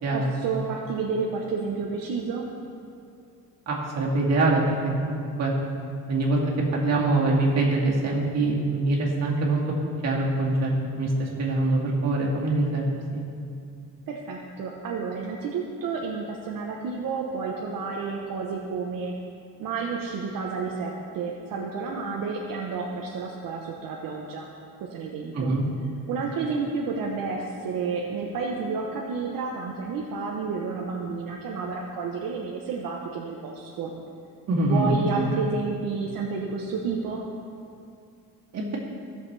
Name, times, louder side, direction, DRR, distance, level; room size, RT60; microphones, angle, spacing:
voice 1, 0.1-2.5 14.1-19.1 19.6-24.5 24.8-25.5 26.1-33.9 34.7-37.2, right 4 dB, 75° right, -1 dB, 0.9 m, -30 dB
voice 2, 3.7-4.6 5.0-5.5 6.1-9.6 10.0-13.2 25.3-25.6 34.5-35.2 38.5-38.8, right 2 dB, 50° right, -3 dB, 2.0 m, -24 dB
16.0 x 6.5 x 3.3 m, 2.4 s
cardioid pair, 140°, 34 cm